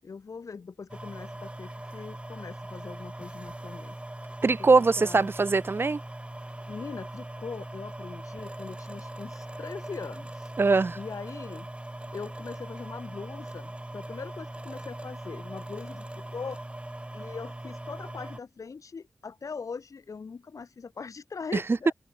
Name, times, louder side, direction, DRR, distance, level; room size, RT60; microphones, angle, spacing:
voice 1, 0.0-3.9 4.7-5.3 6.7-10.5 11.0-11.7 12.1-16.6 17.1-21.9, left 5 dB, 85° left, 8.0 m, -41 dB
sound 1, 0.9-18.4, right 1 dB, 20° right, 2.2 m, -40 dB
voice 2, 4.4-6.0 10.6-11.0 21.5-21.8, right 3 dB, 45° right, 0.4 m, -22 dB
cardioid pair, 45°, 5 cm